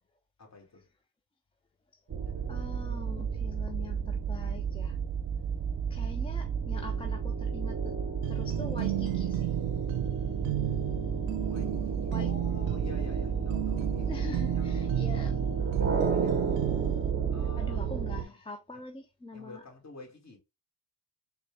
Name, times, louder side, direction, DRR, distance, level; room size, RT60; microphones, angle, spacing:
voice 1, 0.4-0.9 2.2-2.5 11.5-14.3 14.5-15.0 15.7-16.4 17.3-17.9 18.2-18.4 19.3-20.4, left 3 dB, 35° left, 2.0 m, -49 dB
sound 1, 2.1-18.2, right 6 dB, 25° right, 0.7 m, -31 dB
voice 2, 2.5-5.0 5.9-8.0 8.3-9.5 12.0-12.3 14.0-15.4 17.6-19.6, left 2 dB, 15° left, 0.4 m, -43 dB
sound 2, 8.2-17.1, right 15 dB, 75° right, 0.6 m, -34 dB
4.1 x 2.3 x 3.3 m
supercardioid pair, 70°, 45 cm